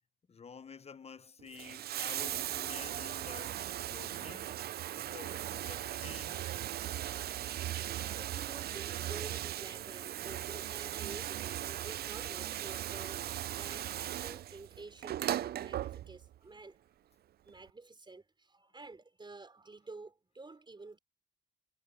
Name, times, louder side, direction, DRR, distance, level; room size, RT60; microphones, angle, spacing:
voice 1, 0.3-3.6 3.8-4.6 5.0-6.4, left 6 dB, 30° left, 1.1 m, -50 dB
Bathtub (filling or washing), 1.4-16.4 17.5-17.6, right 12 dB, 55° right, 0.4 m, -38 dB
voice 2, 7.2-13.3 13.6-16.8 17.4-21.0, right 3 dB, 25° right, 4.7 m, -50 dB
cardioid pair, 90°, 20 cm